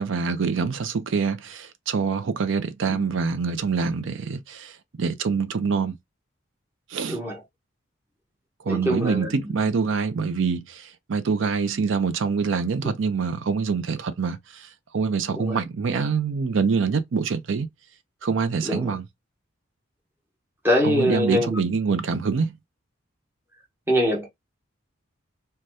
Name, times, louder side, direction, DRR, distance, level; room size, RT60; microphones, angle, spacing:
voice 1, 0.0-6.0 6.9-7.2 8.6-17.7 18.2-19.1 20.8-22.5, right 5 dB, 70° right, 0.5 m, -25 dB
voice 2, 8.7-9.3 15.4-15.6 18.7-18.8 20.6-21.6 23.9-24.3, equal, 10° right, 0.8 m, -23 dB
2.6 x 2.2 x 3.3 m
head